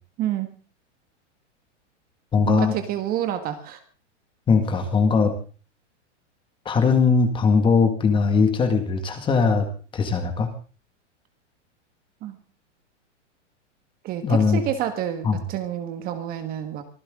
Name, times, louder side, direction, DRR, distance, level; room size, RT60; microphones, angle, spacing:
voice 1, 0.2-0.5 2.5-3.8 12.2-12.4 14.0-16.8, right 10 dB, 25° right, 8 dB, 1.6 m, -28 dB
voice 2, 2.3-2.7 4.5-5.3 6.7-9.7 9.9-10.5 14.2-14.6 15.2-15.4, left 5 dB, 15° left, 7 dB, 1.8 m, -20 dB
24.5 x 15.0 x 3.7 m, 0.38 s
supercardioid pair, 160°, 37 cm